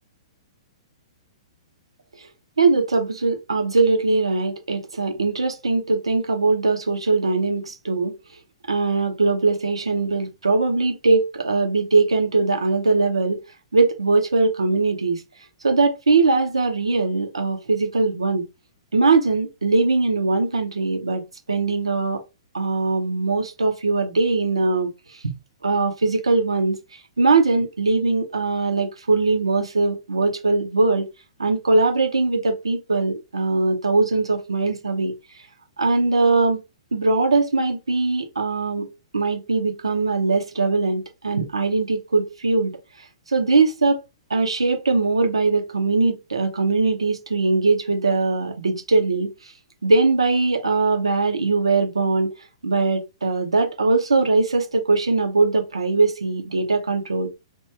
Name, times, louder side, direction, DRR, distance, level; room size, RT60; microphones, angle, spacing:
voice 1, 2.6-8.1 8.7-13.4 13.7-15.2 15.6-18.4 18.9-21.2 21.5-22.2 22.5-24.9 25.2-25.3 25.6-26.8 27.2-31.1 31.4-35.1 35.8-36.6 36.9-38.9 39.1-42.8 43.3-44.0 44.3-49.3 49.8-52.3 52.6-57.3, right 3 dB, 75° right, 0.8 m, -21 dB
3.0 x 2.6 x 3.3 m
figure-of-eight pair, 110°, 3 cm